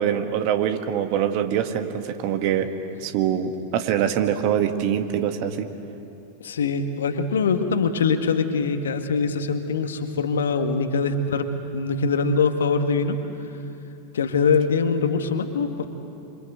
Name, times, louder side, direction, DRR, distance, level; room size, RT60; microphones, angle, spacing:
voice 1, 0.0-2.7 3.0-5.7, right 9 dB, 45° right, 7 dB, 1.7 m, -24 dB
voice 2, 6.4-11.5 11.7-13.2 14.1-15.9, left 5 dB, 65° left, 7 dB, 1.7 m, -23 dB
26.5 x 26.0 x 8.1 m, 2.8 s
figure-of-eight pair, 90°, 0 cm